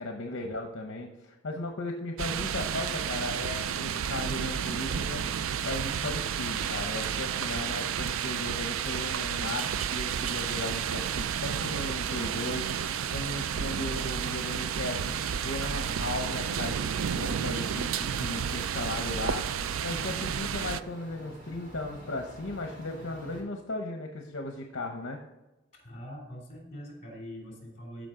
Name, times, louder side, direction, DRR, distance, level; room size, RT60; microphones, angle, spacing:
voice 1, 0.0-15.2 15.4-25.2, left 2 dB, 65° left, 3 dB, 0.9 m, -36 dB
sound 1, 2.2-20.8, right 8 dB, 85° right, 0.4 m, -31 dB
sound 2, 12.2-23.4, right 1 dB, 40° right, 3.3 m, -51 dB
voice 2, 25.7-28.1, equal, 35° left, 0 dB, 3.3 m, -43 dB
13.5 x 5.2 x 3.7 m, 1.1 s
head